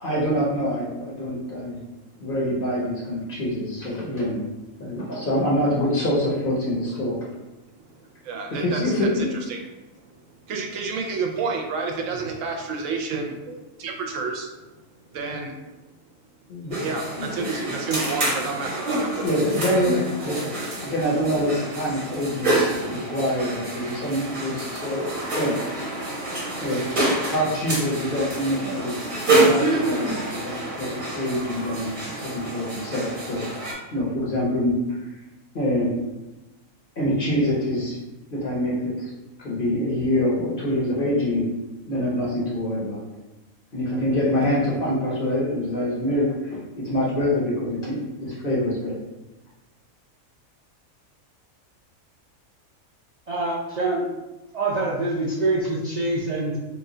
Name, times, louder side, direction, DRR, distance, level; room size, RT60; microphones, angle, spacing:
voice 1, 0.0-1.8 2.2-4.4 4.8-7.2 8.6-9.4 16.5-16.9 17.2-17.5 19.2-25.5 26.6-26.8 27.3-29.0 29.4-33.6 33.9-34.8 35.5-35.9 37.0-38.0 38.3-39.1 39.4-41.5 41.9-43.1 43.7-48.9, left 1 dB, 50° left, -5 dB, 0.8 m, -25 dB
voice 2, 8.3-9.1 9.5-9.6 10.5-14.5 15.1-15.5 16.8-19.3, right 4 dB, 75° right, 2 dB, 0.9 m, -30 dB
sound 1, 16.7-33.7, right 2 dB, 45° right, 0.9 m, -27 dB
voice 3, 53.3-54.0 54.5-56.6, right 2 dB, 60° right, -6 dB, 0.4 m, -25 dB
3.0 x 2.2 x 3.7 m, 1.1 s
omnidirectional pair, 1.4 m